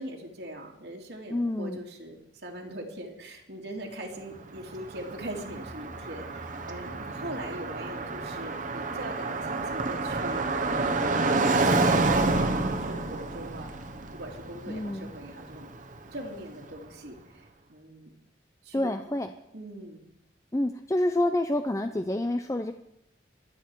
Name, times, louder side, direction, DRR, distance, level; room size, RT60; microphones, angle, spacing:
voice 1, 0.0-13.8 14.1-15.7 16.1-18.1 18.6-18.9 19.5-20.0, right 1 dB, 70° right, -1 dB, 2.4 m, -41 dB
voice 2, 1.3-1.8 14.7-15.1 18.7-19.3 20.5-22.7, left 1 dB, 15° left, 7 dB, 0.5 m, -28 dB
Car passing by, 4.4-16.4, right 3 dB, 45° right, 1.2 m, -29 dB
24.0 x 9.0 x 4.7 m, 0.78 s
head